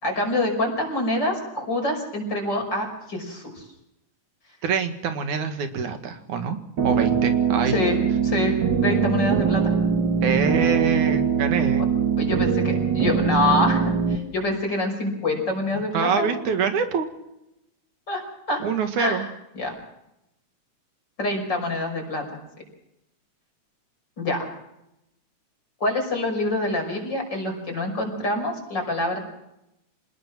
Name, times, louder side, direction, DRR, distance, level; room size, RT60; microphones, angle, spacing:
voice 1, 0.0-3.6 7.7-8.0 8.2-8.5 8.8-9.7 12.2-16.3 18.1-18.2 18.5-18.6 19.0-19.2 19.6-19.7 21.2-22.4 24.2-24.5 25.8-29.2, left 2 dB, 35° left, 2 dB, 6.3 m, -26 dB
voice 2, 4.6-6.6 6.8-7.7 10.2-11.9 15.7-17.1 18.6-19.2, right 6 dB, 85° right, 7 dB, 3.4 m, -25 dB
sound 1, 6.8-14.2, right 6 dB, 45° right, 1.9 m, -22 dB
27.5 x 19.0 x 6.1 m, 0.87 s
omnidirectional pair, 3.3 m